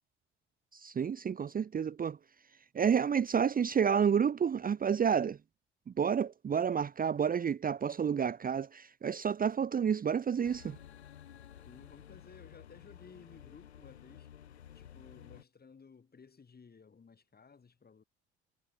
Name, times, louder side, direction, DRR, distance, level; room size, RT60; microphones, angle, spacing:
voice 1, 0.7-2.2 2.7-5.4 5.9-10.8, right 7 dB, 25° right, 0.9 m, -30 dB
sound 1, 10.4-15.4, left 10 dB, 85° left, 1.0 m, -53 dB
voice 2, 11.6-14.3 14.7-18.0, left 5 dB, 30° left, 6.9 m, -57 dB
figure-of-eight pair, 60°, 32 cm